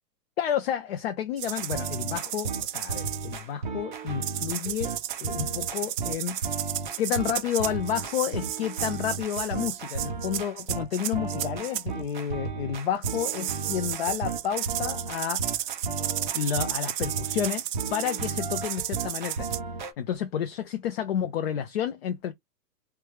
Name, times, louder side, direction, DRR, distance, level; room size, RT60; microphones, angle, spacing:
voice 1, 0.4-4.9 5.2-6.4 7.0-15.7 16.3-17.6 17.9-19.5 20.0-22.3, left 9 dB, 40° left, 0.4 m, -30 dB
sound 1, 1.4-3.4 4.2-11.8 13.0-19.6, right 12 dB, 80° right, 0.6 m, -33 dB
sound 2, 1.5-19.9, right 4 dB, 35° right, 0.4 m, -35 dB
3.3 x 2.3 x 3.0 m
hypercardioid pair, 145°, 49 cm